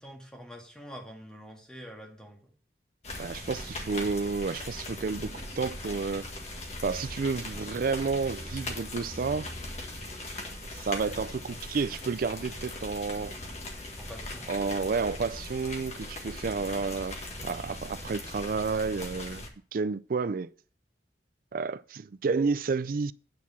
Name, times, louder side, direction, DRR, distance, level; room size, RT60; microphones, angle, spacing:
voice 1, 0.0-2.5 14.0-14.6, equal, 5° left, 1.8 m, -46 dB
sound 1, 3.0-19.5, left 1 dB, 40° left, 1.7 m, -39 dB
voice 2, 3.2-6.3 6.8-9.5 10.8-13.4 14.5-17.2 17.4-19.4 19.7-20.5 21.5-23.1, right 4 dB, 50° right, 0.4 m, -30 dB
9.3 x 4.7 x 6.9 m
head